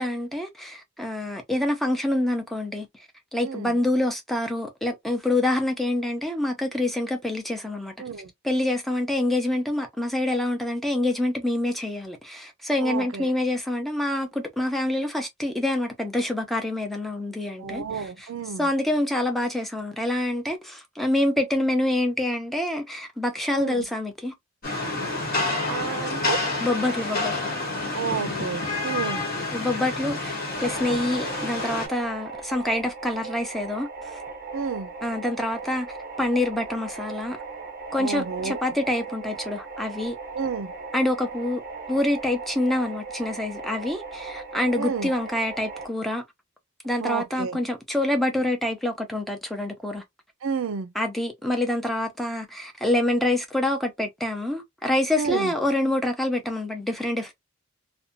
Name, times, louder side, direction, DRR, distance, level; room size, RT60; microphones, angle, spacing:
voice 1, 0.0-2.9 3.3-7.9 8.4-18.3 18.6-24.3 26.6-27.5 29.5-33.9 35.0-35.9 36.2-37.4 37.9-40.1 40.9-41.6 41.9-46.2 46.8-50.0 50.9-57.3, left 1 dB, ahead, 0.6 m, -26 dB
voice 2, 12.8-13.3 17.6-18.7 23.5-23.8 25.7-26.4 27.9-29.2 34.5-34.9 38.0-38.6 40.3-40.7 44.8-45.1 47.0-47.6 50.4-50.9 55.2-55.5, right 5 dB, 65° right, 0.4 m, -30 dB
Rain, 24.6-31.9, left 2 dB, 45° left, 1.2 m, -28 dB
sound 1, 30.5-45.9, right 4 dB, 40° right, 0.8 m, -38 dB
2.7 x 2.2 x 2.6 m
head